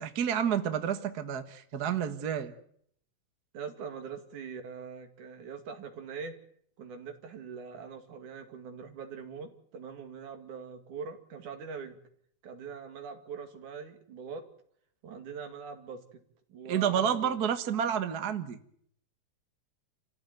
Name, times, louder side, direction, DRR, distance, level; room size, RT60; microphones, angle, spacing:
voice 1, 0.0-2.5 16.7-18.6, right 8 dB, 45° right, 1.3 m, -29 dB
voice 2, 3.5-6.4 6.8-12.0 12.4-14.5 15.0-16.2 16.5-17.4, right 6 dB, 65° right, 3.8 m, -42 dB
28.0 x 15.5 x 9.3 m
omnidirectional pair, 3.8 m